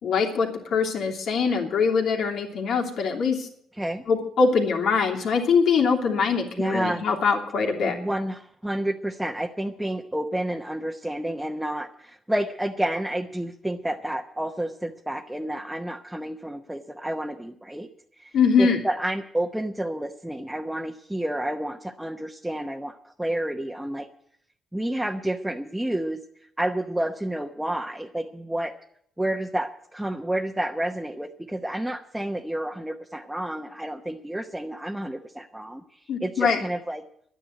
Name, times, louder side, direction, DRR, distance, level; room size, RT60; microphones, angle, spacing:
voice 1, 0.0-3.5 4.1-8.0 18.3-18.8 36.1-36.6, left 5 dB, 70° left, 1 dB, 3.0 m, -23 dB
voice 2, 6.6-7.0 7.8-17.9 18.2-24.1 24.7-26.2 26.6-28.7 29.2-37.0, right 1 dB, 5° right, 2 dB, 0.9 m, -30 dB
11.5 x 9.9 x 9.1 m, 0.68 s
cardioid pair, 90°, 0 cm